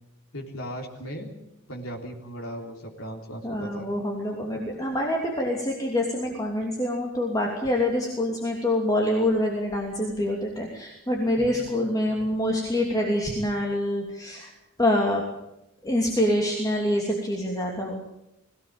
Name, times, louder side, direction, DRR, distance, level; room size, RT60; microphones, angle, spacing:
voice 1, 0.3-1.3 1.7-3.9 11.4-11.7, equal, 75° left, 0 dB, 3.7 m, -37 dB
voice 2, 3.4-14.5 14.8-15.2 15.8-17.9, left 1 dB, 15° left, 0 dB, 2.9 m, -26 dB
22.5 x 17.0 x 9.0 m, 0.87 s
head